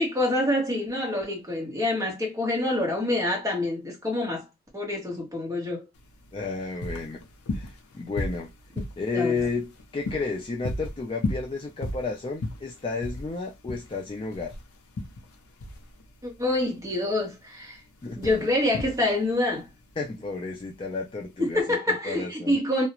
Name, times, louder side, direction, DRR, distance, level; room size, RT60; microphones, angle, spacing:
voice 1, 0.0-4.4 4.7-5.8 9.1-9.4 16.2-17.8 18.2-19.7 21.4-22.9, left 1 dB, 15° right, 0.9 m, -26 dB
sound 1, 5.9-21.6, left 2 dB, 75° left, 0.5 m, -36 dB
voice 2, 6.3-7.2 7.5-8.5 9.0-14.5 18.0-18.2 20.0-21.6 22.0-22.6, left 4 dB, 25° left, 0.3 m, -32 dB
2.3 x 2.0 x 2.9 m
head